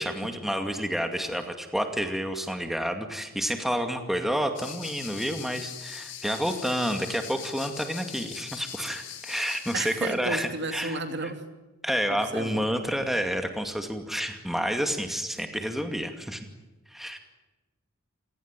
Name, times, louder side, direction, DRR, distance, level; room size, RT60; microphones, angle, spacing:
voice 1, 0.0-11.0 11.8-16.4 16.9-17.2, equal, ahead, 5 dB, 2.3 m, -29 dB
amb-grasshoppers montenegro, 4.6-10.2, left 10 dB, 60° left, 4.5 m, -41 dB
voice 2, 9.7-11.4 12.1-12.7, right 2 dB, 55° right, 7 dB, 2.9 m, -33 dB
29.0 x 18.5 x 9.1 m, 1.1 s
head